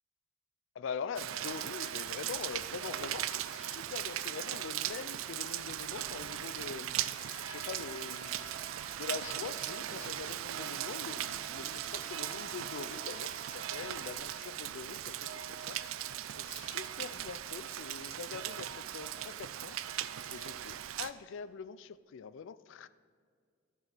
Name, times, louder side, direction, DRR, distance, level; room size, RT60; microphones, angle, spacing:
voice 1, 0.8-7.1 7.4-8.4 8.9-15.8 16.4-19.8 20.3-22.9, left 6 dB, 65° left, 16 dB, 0.3 m, -44 dB
Rain, 1.2-21.1, right 11 dB, 80° right, 0.4 m, -38 dB
Trumpet, 7.1-13.7, equal, 20° left, 1.9 m, -53 dB
13.5 x 4.7 x 5.9 m, 2.1 s
head